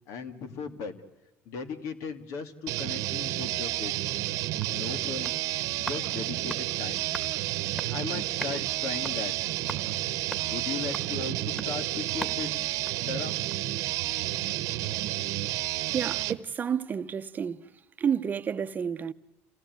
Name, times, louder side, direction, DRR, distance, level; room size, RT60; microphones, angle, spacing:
voice 1, 0.1-1.0 1.5-4.1 4.7-5.5 5.8-7.1 7.9-9.5 10.4-13.3, left 5 dB, 75° left, 2.3 m, -37 dB
sound 1, 2.7-16.4, right 17 dB, 80° right, 1.0 m, -31 dB
Stomp - Street, 4.5-13.8 14.1-14.2, right 1 dB, 5° left, 2.5 m, -44 dB
voice 2, 15.9-17.7 18.0-19.1, right 7 dB, 30° right, 0.8 m, -30 dB
29.0 x 17.0 x 9.3 m
cardioid pair, 120°, 6 cm